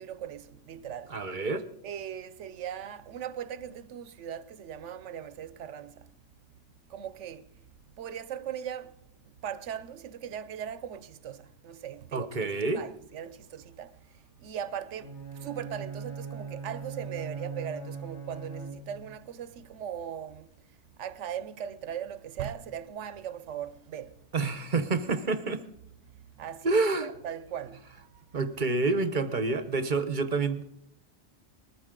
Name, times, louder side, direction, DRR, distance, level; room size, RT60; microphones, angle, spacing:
voice 1, 0.0-1.2 1.8-6.1 6.9-7.5 8.0-9.0 9.2-14.0 14.4-20.5 21.0-24.1 26.2-26.7 27.0-28.1, right 9 dB, 85° right, 1.0 m, -39 dB
voice 2, 1.1-1.7 12.1-12.8 24.3-25.6 26.6-27.1 28.3-30.6, right 3 dB, 45° right, 0.9 m, -28 dB
Bowed string instrument, 15.0-19.2, right 5 dB, 70° left, 2.4 m, -40 dB
20.5 x 14.0 x 3.8 m
omnidirectional pair, 1.2 m